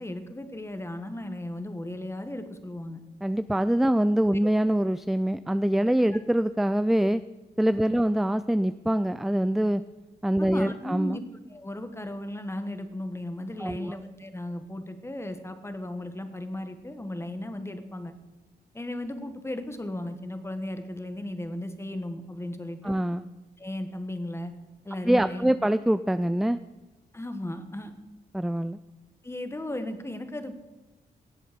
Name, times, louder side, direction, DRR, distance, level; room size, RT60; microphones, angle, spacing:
voice 1, 0.0-3.0 7.8-8.0 10.4-11.2 11.5-18.1 18.7-23.0 23.6-24.5 24.8-25.5 27.1-27.9 29.2-30.6, left 1 dB, 15° left, 8 dB, 1.4 m, -36 dB
voice 2, 3.2-7.2 7.6-9.8 10.2-11.2 13.6-13.9 22.8-23.2 25.1-26.6 28.3-28.8, right 1 dB, ahead, 13 dB, 0.3 m, -24 dB
18.0 x 7.7 x 5.2 m, 1.1 s
cardioid pair, 75°, 18 cm